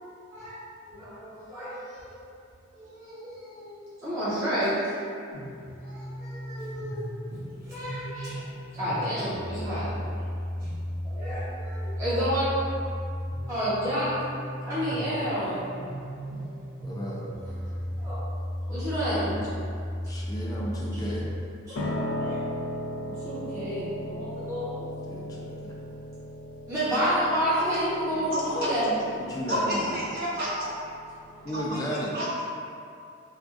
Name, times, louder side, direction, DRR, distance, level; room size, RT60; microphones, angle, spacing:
voice 1, 0.9-2.1 2.7-4.9 5.8-7.0 7.6-8.4 8.7-9.9 10.6-10.7 11.0-12.5 13.5-14.1 14.6-15.7 17.4-17.5 18.0-18.2 18.7-19.4 21.7-22.4 23.2-24.9 26.7-28.9 31.3-31.5, equal, 15° right, -15 dB, 1.0 m, -30 dB
sound 1, 5.3-21.3, equal, 85° right, 0.8 m, -35 dB
voice 2, 16.8-17.2 20.1-21.3 25.0-25.7 28.1-28.2 29.1-29.9 31.4-32.3, equal, 20° left, -4 dB, 0.4 m, -34 dB
Piano, 21.8-31.7, left 1 dB, 90° left, 0.4 m, -37 dB
voice 3, 28.3-28.7 29.5-30.7 31.5-31.8 32.1-32.4, equal, 50° right, -9 dB, 1.0 m, -30 dB
4.6 x 2.4 x 2.5 m, 2.4 s
head